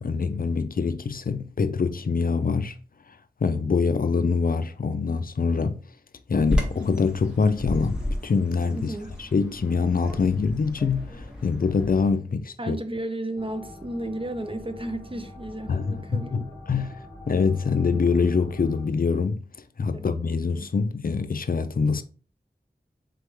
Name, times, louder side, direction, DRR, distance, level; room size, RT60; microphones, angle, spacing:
voice 1, 0.0-2.8 3.4-5.8 6.3-8.9 9.2-12.8 15.7-19.4 19.8-22.0, left 5 dB, 60° left, 0.4 m, -24 dB
Bird vocalization bird call bird song, 6.4-12.1, left 1 dB, 5° right, 1.4 m, -33 dB
voice 2, 12.6-16.6 19.9-20.1, right 1 dB, 30° right, 0.5 m, -33 dB
sound 1, 13.4-18.9, left 1 dB, 35° left, 1.0 m, -44 dB
4.2 x 3.3 x 3.2 m
wide cardioid pair, 55°, 17 cm